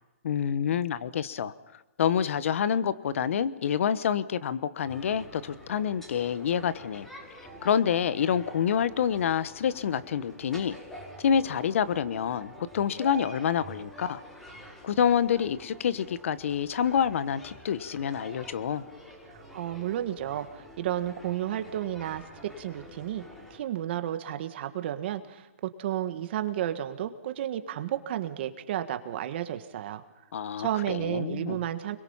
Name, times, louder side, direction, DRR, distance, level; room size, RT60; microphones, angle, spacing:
voice 1, 0.2-1.5 2.0-7.1 7.6-10.8 11.2-14.2 14.8-18.8 30.3-31.6, left 8 dB, 60° left, 15 dB, 1.1 m, -27 dB
sound 1, 4.8-23.6, equal, 5° left, 5.4 m, -47 dB
voice 2, 19.3-22.2 22.6-23.2 23.5-30.0 30.6-32.0, right 11 dB, 45° right, 9 dB, 1.7 m, -32 dB
30.0 x 22.5 x 5.7 m, 1.0 s
hypercardioid pair, 155°, 8 cm